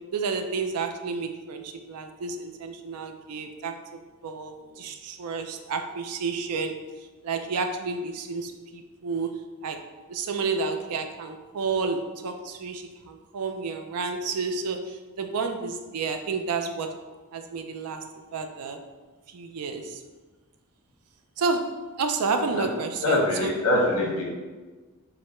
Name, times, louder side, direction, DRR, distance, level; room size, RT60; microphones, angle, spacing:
voice 1, 0.1-6.7 7.2-9.8 10.1-16.9 17.3-18.0 18.3-18.8 19.3-20.0 21.4-21.7 22.0-23.5, right 4 dB, 85° right, 6 dB, 0.4 m, -30 dB
voice 2, 23.0-24.2, left 1 dB, 70° left, -2 dB, 1.1 m, -23 dB
4.7 x 2.1 x 4.3 m, 1.3 s
head